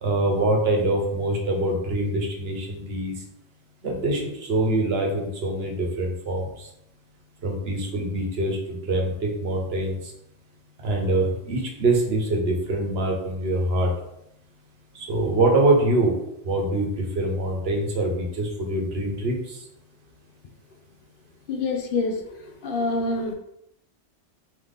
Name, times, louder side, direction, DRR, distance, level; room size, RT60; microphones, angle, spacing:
voice 1, 0.0-3.1 3.8-6.7 7.4-10.1 10.8-13.9 14.9-16.2 16.4-19.6, right 2 dB, 60° right, 1 dB, 1.1 m, -24 dB
voice 2, 21.5-22.2 22.6-23.3, left 3 dB, 60° left, 3 dB, 0.6 m, -26 dB
3.9 x 2.9 x 3.5 m, 0.79 s
omnidirectional pair, 1.2 m